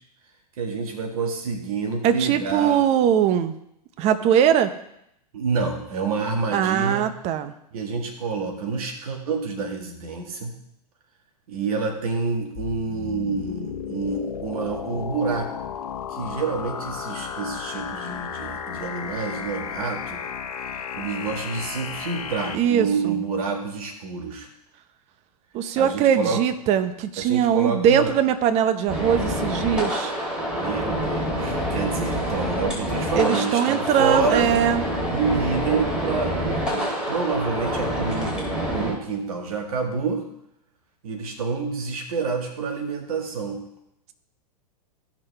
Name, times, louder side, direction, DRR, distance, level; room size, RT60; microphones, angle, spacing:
voice 1, 0.6-2.8 5.3-7.1 7.7-10.5 11.5-15.5 16.1-20.2 20.6-24.5 25.8-26.4 27.2-28.2 30.5-34.5 35.1-40.2 41.0-43.6, right 4 dB, 65° right, 3 dB, 1.9 m, -28 dB
voice 2, 2.0-3.5 4.0-4.7 6.5-7.5 22.5-23.1 25.5-30.1 33.2-34.8, right 9 dB, 35° right, 10 dB, 0.8 m, -21 dB
sound 1, 12.5-22.5, left 7 dB, 65° left, 1.0 m, -33 dB
sound 2, 28.9-38.9, equal, 5° right, 3.4 m, -27 dB
15.0 x 6.0 x 3.4 m, 0.78 s
hypercardioid pair, 105°, 20 cm